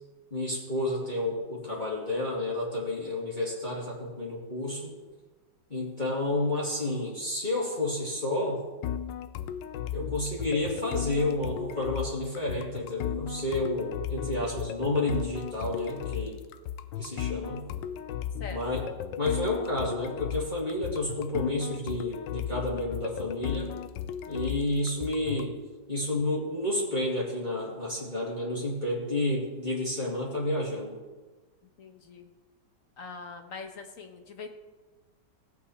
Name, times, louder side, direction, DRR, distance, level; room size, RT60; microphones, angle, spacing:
voice 1, 0.3-4.9 5.7-8.6 9.9-16.4 17.0-17.7 18.5-18.9 19.2-23.7 24.3-25.5 25.9-30.9, left 2 dB, 25° left, -6 dB, 2.5 m, -30 dB
sound 1, 8.8-25.5, left 9 dB, 80° left, 1.3 m, -36 dB
voice 2, 31.8-32.3 33.0-34.5, left 4 dB, 50° left, 5 dB, 1.3 m, -42 dB
17.5 x 8.3 x 4.3 m, 1.2 s
omnidirectional pair, 2.0 m